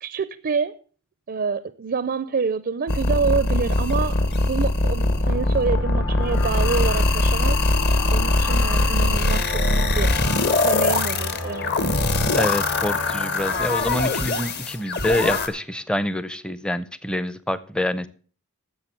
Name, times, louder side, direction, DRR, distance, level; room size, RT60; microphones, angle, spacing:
voice 1, 0.0-0.8 1.3-7.6 8.1-10.1 10.6-11.7, right 5 dB, 45° right, 0.4 m, -27 dB
sound 1, 2.9-15.5, left 2 dB, 45° left, 1.1 m, -22 dB
sound 2, 4.9-15.3, left 2 dB, 70° left, 2.0 m, -32 dB
voice 2, 12.3-18.1, left 1 dB, 5° left, 0.5 m, -26 dB
10.5 x 7.3 x 6.9 m
head